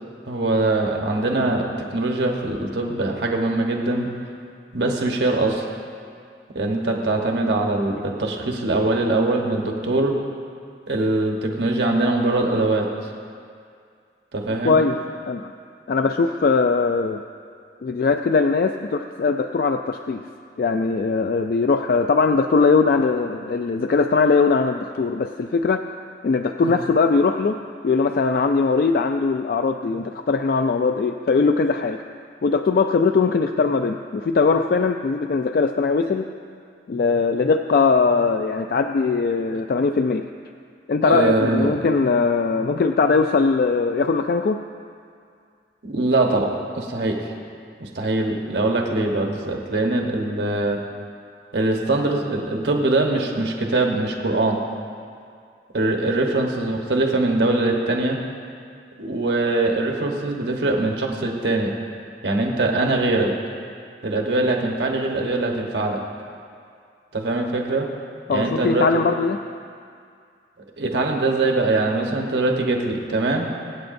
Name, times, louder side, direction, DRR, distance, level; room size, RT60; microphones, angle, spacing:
voice 1, 0.3-4.1 4.7-5.6 6.5-10.2 10.9-12.9 14.3-14.8 26.6-26.7 41.0-41.8 45.8-46.5 46.7-47.2 47.8-50.8 51.5-54.6 55.7-58.2 59.0-61.7 62.2-63.3 64.0-66.0 67.1-67.9 68.3-69.0 70.8-73.5, right 2 dB, 80° right, 1 dB, 1.2 m, -22 dB
voice 2, 14.6-14.9 15.3-15.5 15.9-17.2 17.8-20.2 20.6-26.0 26.2-32.0 32.4-36.2 36.9-40.3 40.9-44.6 68.3-69.4, left 4 dB, 55° left, 6 dB, 0.3 m, -20 dB
23.5 x 8.6 x 2.6 m, 2.3 s
head